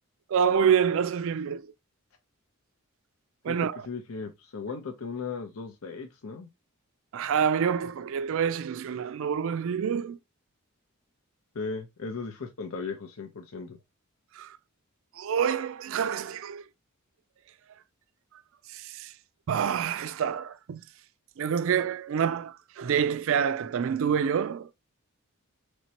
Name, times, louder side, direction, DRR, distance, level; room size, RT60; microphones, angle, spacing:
voice 1, 0.3-1.7 3.4-3.9 7.1-10.2 14.3-14.6 15.1-16.6 18.7-19.1 19.5-20.8 21.4-24.7, right 7 dB, 60° right, 0.3 m, -27 dB
voice 2, 3.5-6.5 11.5-13.8, left 4 dB, 75° left, 0.7 m, -37 dB
4.4 x 3.2 x 2.8 m
head